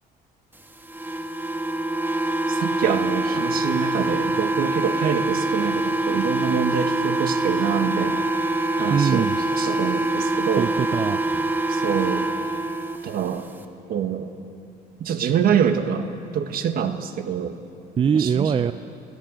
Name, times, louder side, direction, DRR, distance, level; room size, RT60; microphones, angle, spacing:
sound 1, 0.9-13.0, right 2 dB, 10° right, 1.4 m, -24 dB
voice 1, 2.5-8.3 8.8-9.3 9.6-10.7 11.7-12.3 13.0-13.5 13.9-14.3 15.0-17.6 18.2-18.5, right 8 dB, 60° right, 8 dB, 1.6 m, -25 dB
voice 2, 8.9-9.4 10.6-11.5 18.0-18.7, right 7 dB, 30° right, 11 dB, 0.5 m, -22 dB
25.0 x 16.0 x 7.6 m, 2.6 s
cardioid pair, 110°, 17 cm